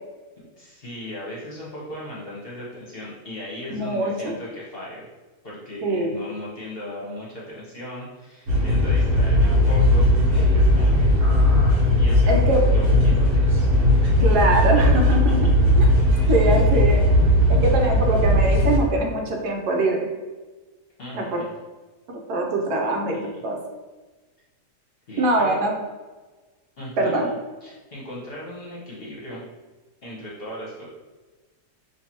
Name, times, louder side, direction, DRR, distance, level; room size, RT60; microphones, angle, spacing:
voice 1, 0.4-5.1 5.4-12.4 12.7-14.1 16.2-16.4 21.0-21.5 23.1-23.2 25.1-25.6 26.8-27.3 27.6-29.4 30.0-30.9, left 1 dB, 45° left, -6 dB, 0.9 m, -37 dB
voice 2, 3.7-4.3 5.8-6.1 12.3-12.6 14.2-15.4 15.8-15.9 16.3-17.0 17.5-20.0 21.1-21.4 22.1-23.1 23.4-23.6 25.2-25.7 27.0-27.3, right 2 dB, 75° right, 1 dB, 1.3 m, -23 dB
sound 1, 8.5-18.8, left 1 dB, 50° right, 1.5 m, -18 dB
5.7 x 2.7 x 2.9 m, 1.2 s
omnidirectional pair, 1.7 m